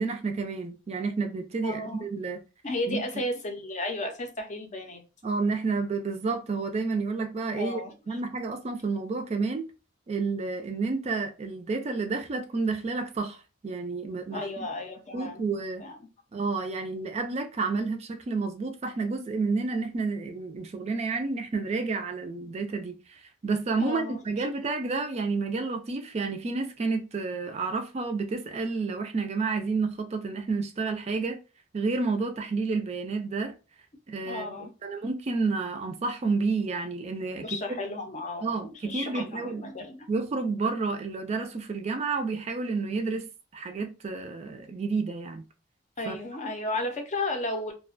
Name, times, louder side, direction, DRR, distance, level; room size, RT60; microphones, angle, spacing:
voice 1, 0.0-2.4 2.9-3.0 5.2-7.8 8.1-9.7 10.1-14.7 15.1-15.8 16.3-31.4 31.7-33.5 34.1-37.8 38.4-39.7 40.1-45.4 46.1-46.2, right 4 dB, 35° right, 0.3 m, -30 dB
voice 2, 1.6-2.0 2.6-5.0 7.6-7.9 14.3-15.4 15.8-16.0 23.8-24.2 34.2-34.7 37.4-38.5 38.9-40.1 46.0-47.7, left 2 dB, 40° left, 0.5 m, -33 dB
2.4 x 2.1 x 2.4 m
head